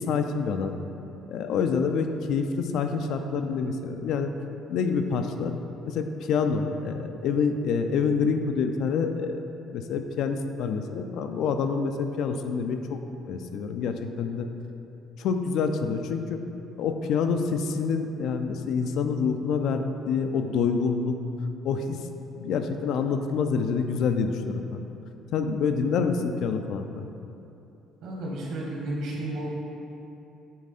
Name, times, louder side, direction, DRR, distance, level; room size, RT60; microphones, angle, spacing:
voice 1, 0.1-0.8 1.3-4.3 4.7-5.6 5.9-9.4 9.7-13.0 13.3-14.5 15.2-16.4 16.7-21.2 21.6-22.0 22.4-24.8 25.3-27.1, left 5 dB, 60° left, 6 dB, 0.4 m, -27 dB
voice 2, 28.0-29.5, right 1 dB, 60° right, -3 dB, 1.4 m, -32 dB
8.4 x 3.6 x 4.1 m, 2.9 s
cardioid pair, 160°, 0 cm